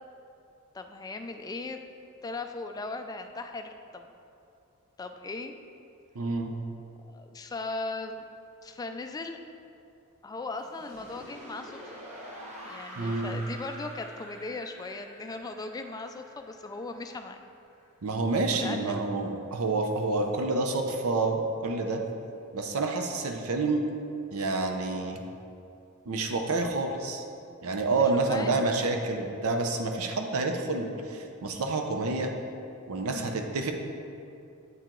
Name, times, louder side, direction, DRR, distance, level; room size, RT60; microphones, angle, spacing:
voice 1, 0.7-1.8 2.2-4.1 5.0-5.6 7.0-8.2 8.6-9.4 10.2-11.9 12.6-17.4 18.5-19.0 27.9-28.6 33.1-33.4, left 3 dB, 15° left, 6 dB, 0.3 m, -38 dB
voice 2, 6.1-6.5 13.0-13.3 18.0-22.0 22.5-23.8 24.3-25.2 26.1-27.2 27.6-32.3 32.9-33.7, right 3 dB, 75° right, 4 dB, 0.6 m, -28 dB
sound 1, 10.6-17.5, equal, 30° right, 1.3 m, -46 dB
8.2 x 4.6 x 3.8 m, 2.6 s
head